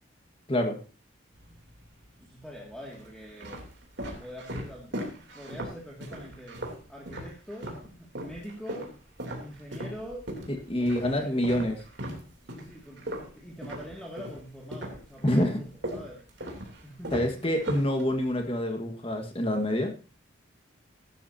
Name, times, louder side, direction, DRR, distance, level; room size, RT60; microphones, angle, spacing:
sound 1, 1.3-2.1 2.8-7.9 8.1-14.4 14.7-18.4, right 1 dB, 60° right, 3.2 m, -38 dB
voice 1, 2.2-3.6 4.2-6.6 6.9-8.9 9.4-10.3 10.8-11.8 12.5-17.8, equal, 5° left, -3 dB, 2.3 m, -44 dB
voice 2, 10.5-11.8 15.2-15.6 17.1-20.1, left 1 dB, 25° left, 5 dB, 1.7 m, -27 dB
15.5 x 12.0 x 2.8 m, 0.36 s
head